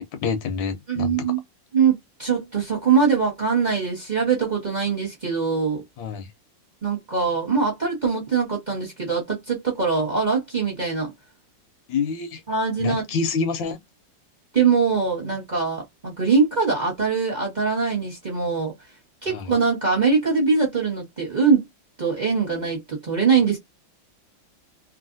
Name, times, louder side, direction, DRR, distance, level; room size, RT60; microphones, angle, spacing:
voice 1, 0.0-1.2 6.0-6.3 11.9-12.4 12.8-13.8 19.3-19.5, left 5 dB, 80° left, 1.4 m, -27 dB
voice 2, 0.9-1.4 1.7-5.8 6.8-11.1 12.5-13.0 14.5-18.7 19.2-21.7 22.0-23.6, right 5 dB, 30° right, 1.1 m, -22 dB
3.1 x 2.5 x 2.6 m
omnidirectional pair, 2.1 m